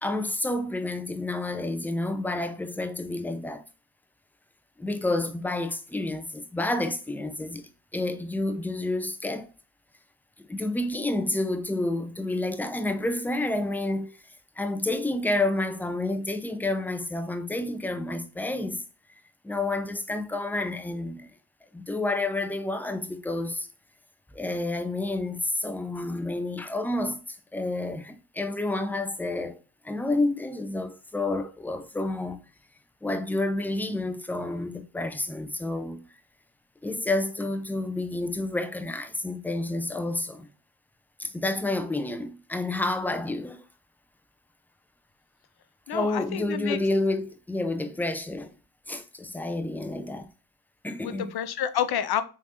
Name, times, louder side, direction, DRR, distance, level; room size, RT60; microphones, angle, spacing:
voice 1, 0.0-3.6 4.8-7.6 7.9-9.5 10.5-14.2 14.6-18.8 19.4-21.3 21.7-23.7 24.3-29.6 29.8-32.4 33.0-36.1 36.8-40.5 41.2-43.6 45.9-48.5 48.9-50.3 50.8-51.4, left 2 dB, 5° left, 0.5 m, -29 dB
voice 2, 45.9-46.8 51.0-52.2, left 9 dB, 50° left, 0.6 m, -29 dB
3.2 x 2.7 x 2.8 m
supercardioid pair, 45°, 49 cm